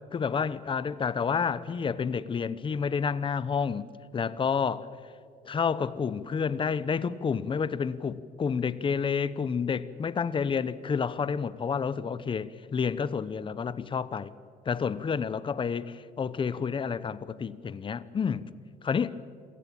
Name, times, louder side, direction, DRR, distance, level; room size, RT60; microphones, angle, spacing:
voice 1, 0.1-3.9 4.1-4.9 5.5-14.3 14.7-18.4 18.8-19.2, left 6 dB, 30° left, 0.9 m, -29 dB
27.0 x 17.0 x 8.9 m
cardioid pair, 110°, 17 cm